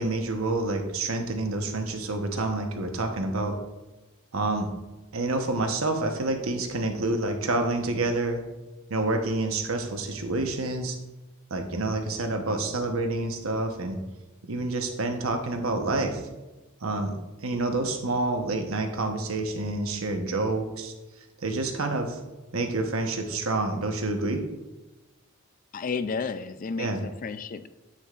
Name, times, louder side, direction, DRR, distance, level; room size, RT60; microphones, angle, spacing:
voice 1, 0.0-3.6 4.3-4.7 5.1-8.4 8.9-11.0 11.5-14.0 14.4-16.2 16.8-17.2 17.4-20.9 21.4-22.2 22.5-24.4 26.8-27.0, right 2 dB, 90° right, 4 dB, 1.0 m, -28 dB
voice 2, 25.7-27.7, left 5 dB, 40° left, 12 dB, 0.4 m, -32 dB
9.8 x 8.4 x 2.5 m, 1.1 s
head